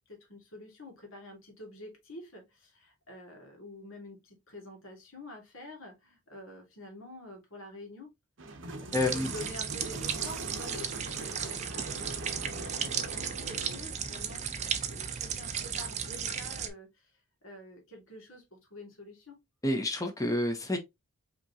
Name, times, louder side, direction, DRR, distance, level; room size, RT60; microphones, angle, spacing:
voice 1, 0.1-8.1 9.1-12.2 12.5-17.1 17.4-19.4, left 1 dB, 65° left, 1.8 m, -48 dB
sound 1, 8.4-13.8, right 2 dB, 60° right, 0.8 m, -42 dB
voice 2, 8.9-9.3 19.6-20.8, left 1 dB, 15° left, 0.8 m, -29 dB
sound 2, 8.9-16.7, right 7 dB, 30° right, 0.5 m, -35 dB
5.1 x 2.9 x 2.7 m
head